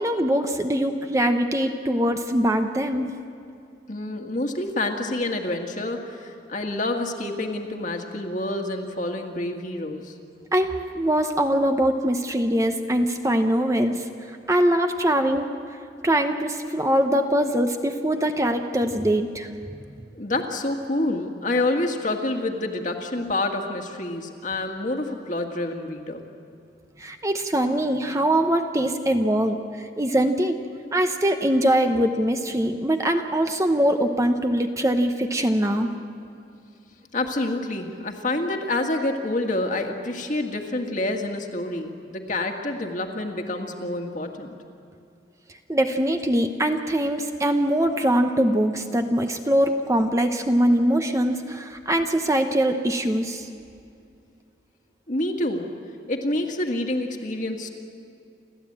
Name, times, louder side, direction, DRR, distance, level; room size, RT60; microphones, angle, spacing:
voice 1, 0.0-3.1 10.5-15.5 16.0-20.0 27.0-30.6 30.9-35.9 45.7-53.5, right 1 dB, 15° right, 6 dB, 0.8 m, -22 dB
voice 2, 3.9-10.1 20.2-26.2 37.1-44.5 55.1-55.7 56.1-57.7, left 2 dB, 45° left, 3 dB, 1.9 m, -27 dB
29.0 x 13.5 x 8.8 m, 2.5 s
head